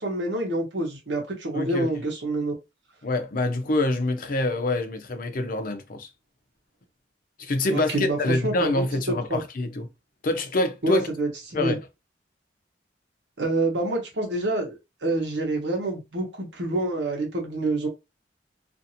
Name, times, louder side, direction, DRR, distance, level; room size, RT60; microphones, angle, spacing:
voice 1, 0.0-2.5 7.7-9.4 10.8-11.8 13.4-17.9, right 2 dB, 85° right, 1.0 m, -27 dB
voice 2, 1.5-1.9 3.0-6.1 7.4-9.9 10.2-11.1 11.5-11.8, left 2 dB, 50° left, 0.6 m, -26 dB
2.5 x 2.5 x 2.8 m
head